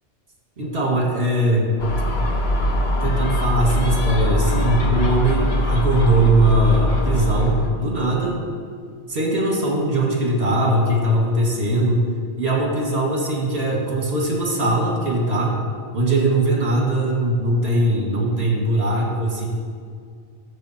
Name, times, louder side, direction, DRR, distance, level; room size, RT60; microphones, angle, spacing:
voice 1, 0.6-1.8 3.0-8.4 9.1-12.1 12.4-15.6 15.9-19.5, right 1 dB, 60° right, -1 dB, 2.4 m, -20 dB
Gull seagull, 1.8-7.7, left 1 dB, 60° left, 1.3 m, -22 dB
14.5 x 6.9 x 4.4 m, 2.1 s
omnidirectional pair, 1.2 m